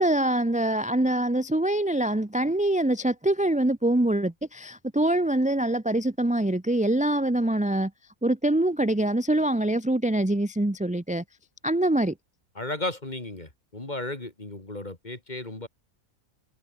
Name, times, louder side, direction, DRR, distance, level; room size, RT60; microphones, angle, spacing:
voice 1, 0.0-7.9 8.2-11.2 11.6-12.1, right 1 dB, 5° right, 0.8 m, -24 dB
voice 2, 12.5-15.7, left 2 dB, 30° left, 3.4 m, -34 dB
omnidirectional pair, 1.5 m